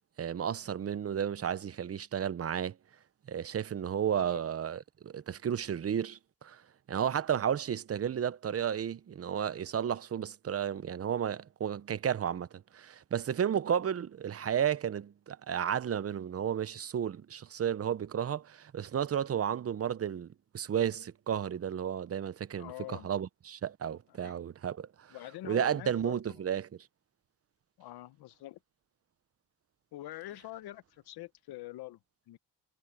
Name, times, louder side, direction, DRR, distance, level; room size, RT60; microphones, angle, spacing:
voice 1, 0.2-2.7 3.3-6.6 6.9-12.5 12.7-20.3 20.5-24.9 25.5-26.7, right 9 dB, 40° right, 0.8 m, -32 dB
voice 2, 4.1-4.4 22.5-23.1 24.1-24.4 25.1-26.5 27.8-28.6 29.9-32.0 32.3-32.4, left 16 dB, 80° left, 1.1 m, -45 dB
cardioid pair, 85°, 38 cm